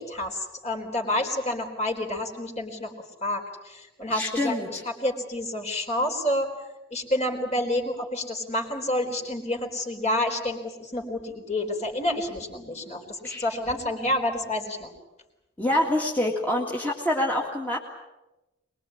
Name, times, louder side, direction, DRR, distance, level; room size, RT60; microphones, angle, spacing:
voice 1, 0.0-2.9 3.2-6.5 6.9-14.9, left 1 dB, 35° left, 4 dB, 4.2 m, -29 dB
voice 2, 4.1-4.8 13.2-13.5 15.6-17.8, left 1 dB, 10° left, -2 dB, 2.1 m, -26 dB
23.5 x 22.0 x 8.7 m, 1.0 s
head